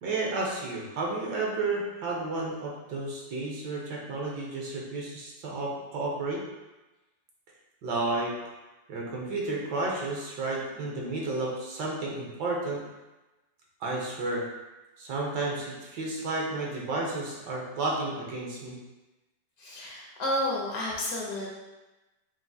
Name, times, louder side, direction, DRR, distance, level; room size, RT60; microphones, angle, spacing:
voice 1, 0.0-6.4 7.8-8.4 8.9-12.8 13.8-14.4 15.0-18.7, right 2 dB, 70° right, -3 dB, 1.4 m, -32 dB
voice 2, 19.6-21.5, left 1 dB, 60° left, -3 dB, 1.1 m, -31 dB
5.8 x 2.5 x 2.7 m, 1.1 s
omnidirectional pair, 2.0 m